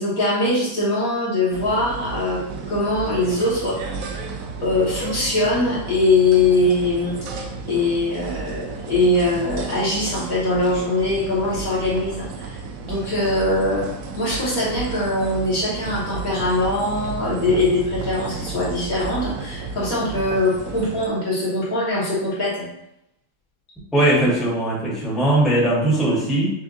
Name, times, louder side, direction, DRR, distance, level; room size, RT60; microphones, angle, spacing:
voice 1, 0.0-2.4 2.7-3.8 4.6-12.6 12.8-13.8 14.2-22.6, left 2 dB, 55° left, -7 dB, 1.5 m, -22 dB
sound 1, 1.5-21.1, right 5 dB, 75° right, 0.7 m, -33 dB
voice 2, 23.9-26.5, right 1 dB, ahead, -7 dB, 1.0 m, -19 dB
5.7 x 2.5 x 2.6 m, 0.83 s
omnidirectional pair, 1.9 m